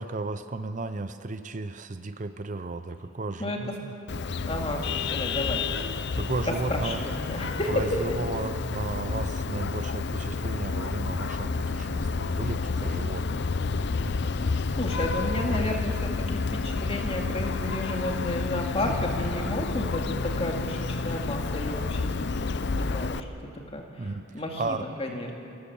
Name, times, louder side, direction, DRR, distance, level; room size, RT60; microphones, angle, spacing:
voice 1, 0.0-3.9 6.1-7.0 7.7-13.5 14.1-14.2 24.0-24.9, right 3 dB, 35° right, 10 dB, 0.6 m, -34 dB
Vehicle horn car horn honking, 4.1-23.2, left 4 dB, 55° left, 0.6 m, -30 dB
voice 2, 4.5-4.9 5.1-5.6 6.7-7.7 14.3-14.5 14.8-16.2 16.5-23.3 23.7-25.3, left 1 dB, 30° left, 1 dB, 2.3 m, -32 dB
29.0 x 15.5 x 7.2 m, 2.7 s
head